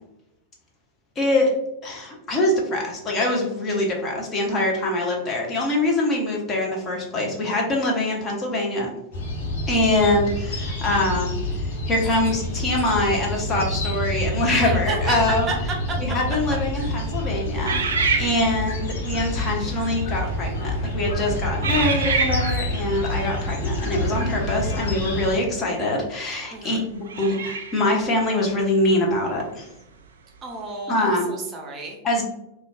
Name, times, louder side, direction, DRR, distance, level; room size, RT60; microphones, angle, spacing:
voice 1, 1.2-1.5 1.8-8.9 9.7-15.5 16.0-26.8 27.2-29.7 30.9-31.3 32.0-32.2, left 1 dB, 25° left, -1 dB, 0.7 m, -24 dB
sound 1, 9.1-25.4, left 1 dB, 60° left, 0.9 m, -27 dB
voice 2, 14.6-15.2 15.5-15.6 16.8-16.9 26.5-26.8 30.4-32.0, right 4 dB, 25° right, 1 dB, 0.6 m, -32 dB
sound 2, 17.6-18.8 19.6-19.8 20.5-20.9 21.6-22.7 25.4-25.5 27.0-27.9, right 5 dB, 65° right, 0.3 m, -26 dB
3.8 x 2.3 x 2.2 m, 0.86 s
figure-of-eight pair, 90°, 0 cm